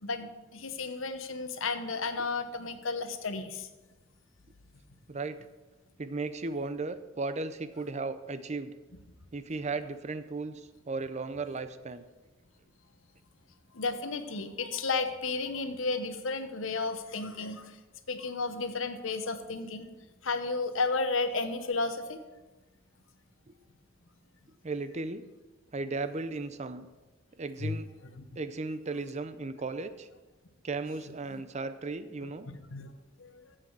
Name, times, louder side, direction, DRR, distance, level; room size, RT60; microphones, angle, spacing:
voice 1, 0.0-3.7 13.7-17.7 18.1-19.9 20.2-22.2 27.6-27.8 28.2-28.3 31.3-31.4 32.4-32.9 33.2-33.4, left 3 dB, 85° left, 9 dB, 1.0 m, -33 dB
voice 2, 6.0-8.7 9.3-12.0 24.6-25.2 25.7-26.9 27.4-27.9 28.4-30.1 30.6-32.5, right 3 dB, 35° right, 12 dB, 0.6 m, -35 dB
14.0 x 7.7 x 4.7 m, 1.2 s
head